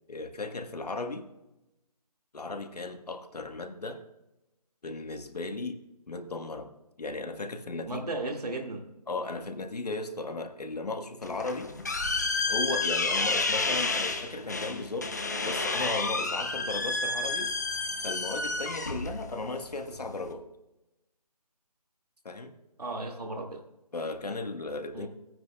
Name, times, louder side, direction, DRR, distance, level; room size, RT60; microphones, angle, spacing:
voice 1, 0.1-1.3 2.3-4.0 4.8-5.8 6.1-6.7 7.0-8.0 9.1-11.7 12.5-15.2 15.4-17.5 18.0-20.4 22.2-22.5 23.9-25.1, left 3 dB, 80° left, 6 dB, 1.3 m, -36 dB
voice 2, 7.9-8.9 14.3-14.5 22.8-23.6 24.9-25.1, right 2 dB, 75° right, 2 dB, 2.0 m, -35 dB
sound 1, 11.2-20.3, left 3 dB, 25° left, 0.6 m, -30 dB
16.0 x 9.3 x 2.3 m, 0.94 s
figure-of-eight pair, 175°, 20 cm